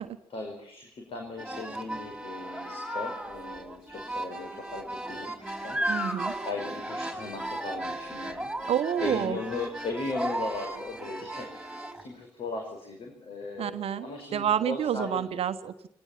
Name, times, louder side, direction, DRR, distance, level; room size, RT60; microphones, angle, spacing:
voice 1, 0.3-5.8 6.4-8.5 9.0-15.3, left 3 dB, 45° left, 2 dB, 5.1 m, -37 dB
sound 1, 1.4-12.0, right 1 dB, 5° right, 5.6 m, -35 dB
voice 2, 5.9-6.3 8.7-9.4 13.6-15.7, right 9 dB, 50° right, 11 dB, 1.2 m, -29 dB
22.5 x 18.5 x 7.3 m, 0.66 s
figure-of-eight pair, 45°, 13 cm